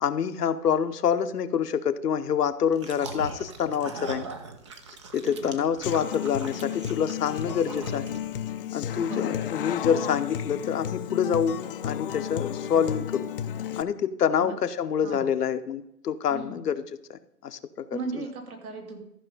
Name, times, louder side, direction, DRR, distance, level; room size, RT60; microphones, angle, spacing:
voice 1, 0.0-4.3 5.1-8.2 8.7-11.6 11.8-13.3 13.8-16.8 17.1-18.2, left 8 dB, 75° left, 10 dB, 0.9 m, -27 dB
sound 1, 2.7-8.5, right 4 dB, 20° right, 0.4 m, -40 dB
voice 2, 5.2-5.6 9.0-9.6 14.4-14.5 15.0-15.3 16.3-16.6 17.9-19.0, right 3 dB, 65° right, 2 dB, 2.9 m, -37 dB
Human voice / Acoustic guitar, 5.8-13.8, left 10 dB, 35° left, 0.5 m, -33 dB
14.0 x 5.4 x 5.2 m, 0.80 s
hypercardioid pair, 130°, 47 cm